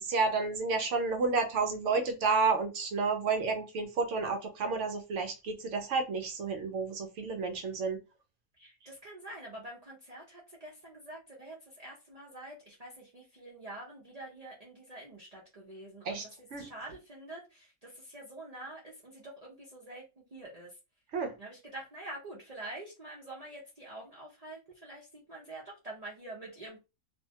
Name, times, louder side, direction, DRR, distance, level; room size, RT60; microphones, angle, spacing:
voice 1, 0.0-8.0 16.0-16.3 16.5-16.7 21.1-21.3, right 4 dB, 65° right, 0.8 m, -30 dB
voice 2, 8.6-20.8 21.4-26.8, right 1 dB, 50° right, 0.4 m, -46 dB
2.6 x 2.1 x 2.7 m
omnidirectional pair, 1.5 m